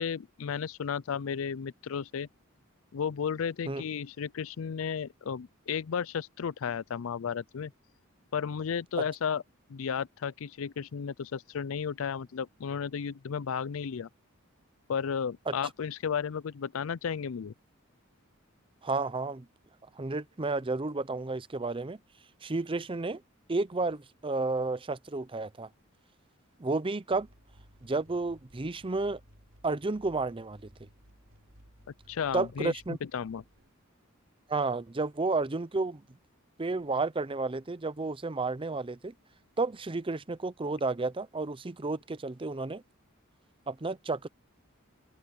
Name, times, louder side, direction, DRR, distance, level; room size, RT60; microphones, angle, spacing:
voice 1, 0.0-2.3 2.9-7.7 8.3-9.4 9.7-14.1 14.9-17.5 32.1-33.4, left 7 dB, 70° left, 0.4 m, -33 dB
voice 2, 18.8-19.5 20.0-22.0 22.4-23.2 23.5-25.7 26.6-27.3 27.8-29.2 29.6-30.7 32.3-33.0 34.5-36.0 36.6-39.1 39.6-42.8 43.7-44.3, right 3 dB, 25° right, 0.6 m, -31 dB
sound 1, 27.1-33.7, equal, 65° right, 4.0 m, -58 dB
open air
head